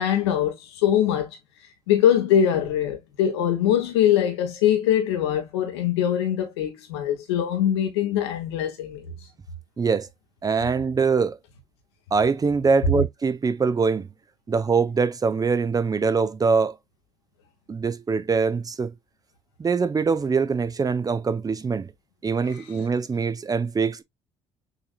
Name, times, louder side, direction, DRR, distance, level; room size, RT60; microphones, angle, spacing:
voice 1, 0.0-1.4 1.9-9.0 22.5-22.6, left 10 dB, 85° left, 1.1 m, -22 dB
voice 2, 9.8-10.1 10.4-11.4 12.1-14.1 14.5-16.8 17.7-18.9 19.6-21.9 22.2-24.0, right 5 dB, 30° right, 0.7 m, -23 dB
6.8 x 3.0 x 2.4 m
hypercardioid pair, 55°, 13 cm